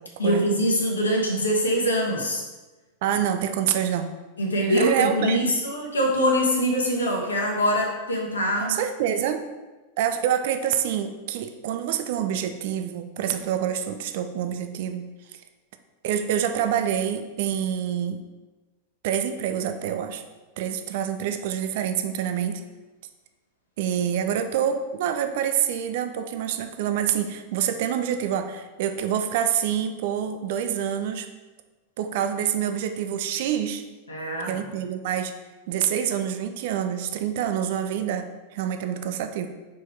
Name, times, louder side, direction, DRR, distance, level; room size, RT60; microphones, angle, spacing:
voice 1, 0.2-2.4 4.4-8.8 34.1-34.6, equal, 75° left, -1 dB, 1.2 m, -23 dB
voice 2, 3.0-4.1 4.6-5.6 8.6-9.4 10.0-15.1 16.0-18.2 19.0-20.2 20.6-22.6 23.8-31.3 32.0-33.8 34.5-35.3 35.7-39.5, right 9 dB, 50° right, 8 dB, 0.5 m, -26 dB
5.2 x 4.6 x 4.5 m, 1.2 s
figure-of-eight pair, 90°, 0 cm